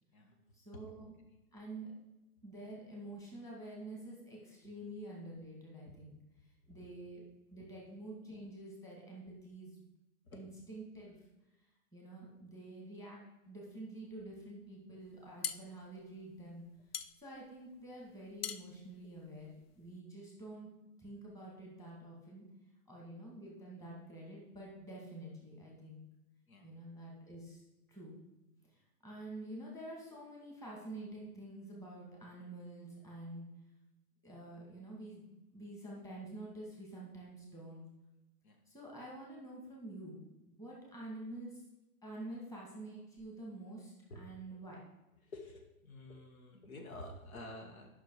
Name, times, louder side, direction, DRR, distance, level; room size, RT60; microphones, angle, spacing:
voice 1, 0.5-1.1 1.5-1.9 2.4-6.2 6.4-7.2 7.5-9.8 10.3-11.2 11.9-16.6 17.2-20.7 21.0-22.5 22.9-26.0 26.6-27.6 27.9-28.2 28.7-33.5 34.2-35.3 35.5-37.9 38.7-41.6 42.0-44.8, right 1 dB, 5° left, -4 dB, 2.1 m, -48 dB
sound 1, 15.1-20.0, left 8 dB, 45° left, 0.5 m, -45 dB
voice 2, 45.2-47.9, left 1 dB, 70° left, 3 dB, 1.8 m, -50 dB
9.2 x 6.1 x 4.8 m, 0.99 s
hypercardioid pair, 140°, 44 cm